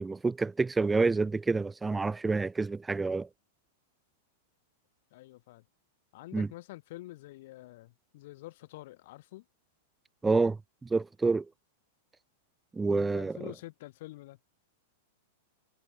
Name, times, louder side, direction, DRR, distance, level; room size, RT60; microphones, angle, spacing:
voice 1, 0.0-3.3 6.3-6.5 10.2-11.5 12.7-13.5, right 3 dB, 10° right, 0.4 m, -28 dB
voice 2, 5.1-5.6 6.1-9.4 13.0-14.4, left 18 dB, 55° left, 1.2 m, -47 dB
figure-of-eight pair, 95°, 0 cm